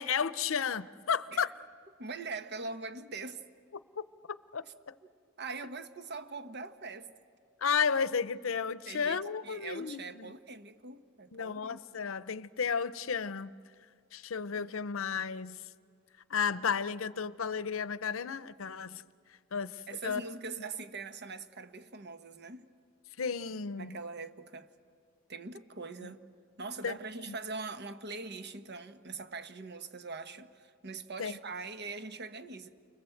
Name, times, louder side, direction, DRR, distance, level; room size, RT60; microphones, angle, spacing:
voice 1, 0.0-1.5 4.0-4.1 4.5-4.9 7.6-10.3 11.3-13.5 14.1-15.6 16.3-19.0 19.5-20.2 20.6-20.7 23.2-24.0 26.0-26.1 26.8-27.0 27.3-27.4 31.2-31.4, left 6 dB, 80° left, 0.7 m, -33 dB
voice 2, 2.0-3.4 5.4-7.1 8.9-12.1 19.9-22.7 23.8-24.7 25.3-26.2 26.6-32.7, right 3 dB, 55° right, 1.2 m, -42 dB
29.5 x 25.0 x 7.8 m
head